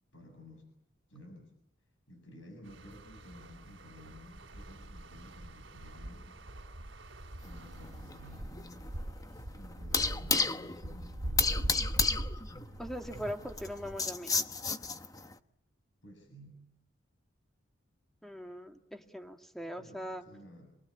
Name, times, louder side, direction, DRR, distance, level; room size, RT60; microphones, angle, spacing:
voice 1, 0.1-0.6 1.1-1.5 2.1-6.4 7.4-9.0 9.5-12.0 16.0-16.7 19.8-20.8, left 1 dB, 75° left, 4 dB, 7.5 m, -53 dB
sound 1, 2.6-10.1 10.4-10.7, right 2 dB, 70° right, 3.7 m, -54 dB
sound 2, 4.3-14.0, right 1 dB, 85° right, 2.0 m, -41 dB
sound 3, 7.4-15.3, left 4 dB, 20° left, 1.0 m, -33 dB
voice 2, 12.8-14.5 18.2-20.2, equal, ahead, 4 dB, 2.2 m, -41 dB
28.0 x 21.5 x 8.6 m, 0.77 s
head